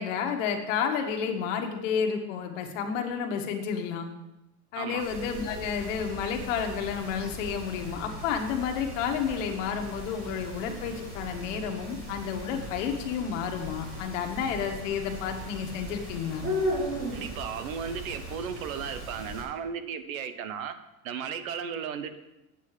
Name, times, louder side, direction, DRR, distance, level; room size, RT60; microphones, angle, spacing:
voice 1, 0.0-4.1 4.7-16.5, left 7 dB, 60° left, 4 dB, 1.5 m, -31 dB
sound 1, 5.0-19.4, equal, 30° right, 3.6 m, -38 dB
voice 2, 17.1-20.7 21.0-22.2, right 7 dB, 70° right, 11 dB, 1.0 m, -35 dB
9.0 x 8.2 x 4.9 m, 0.93 s
supercardioid pair, 170°, 43 cm